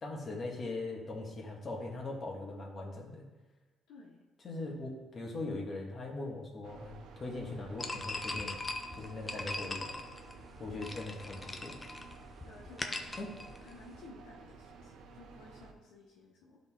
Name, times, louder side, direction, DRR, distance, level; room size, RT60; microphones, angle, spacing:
voice 1, 0.0-3.3 4.4-8.6 8.9-10.0 10.6-11.7 13.2-13.3, left 2 dB, 45° left, -1 dB, 1.8 m, -40 dB
voice 2, 3.9-4.2 12.5-13.3 13.6-16.6, left 2 dB, 90° left, -2 dB, 1.0 m, -55 dB
sound 1, 6.6-15.7, right 4 dB, 85° right, 0.7 m, -53 dB
sound 2, 7.8-14.0, left 2 dB, 20° left, 0.7 m, -41 dB
11.5 x 4.0 x 3.7 m, 1.2 s
cardioid pair, 90°, 0 cm